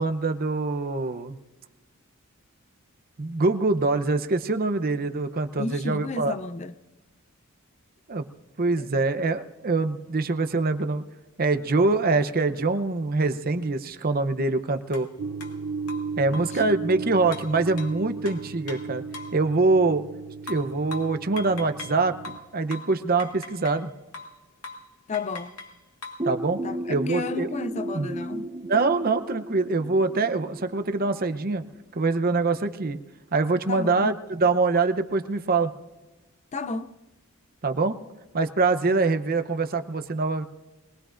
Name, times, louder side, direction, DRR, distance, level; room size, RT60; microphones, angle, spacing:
voice 1, 0.0-1.4 3.2-6.3 8.1-8.2 8.6-11.0 11.4-15.1 16.2-19.0 19.3-20.1 20.5-22.2 22.5-23.9 26.2-26.6 26.9-27.5 27.9-28.1 28.7-31.6 32.0-33.0 33.3-35.7 37.6-38.0 38.3-40.5, right 3 dB, 40° right, 0.7 m, -24 dB
voice 2, 5.6-6.7 8.8-8.9 16.3-16.6 17.0-17.1 25.1-25.6 26.6-28.5 33.7-34.1 36.5-37.0 38.9-39.0, left 4 dB, 30° left, 0.4 m, -33 dB
sound 1, 14.9-15.1 15.4-15.5 15.9-16.6 17.3-19.4 20.5-22.0 22.2-23.9 24.1-24.4 24.6-24.9 25.1-26.3, left 3 dB, 90° left, 1.9 m, -41 dB
sound 2, 15.2-22.4, right 4 dB, 90° right, 0.7 m, -36 dB
sound 3, 26.2-31.8, right 1 dB, 20° right, 1.0 m, -35 dB
23.5 x 18.5 x 2.5 m
head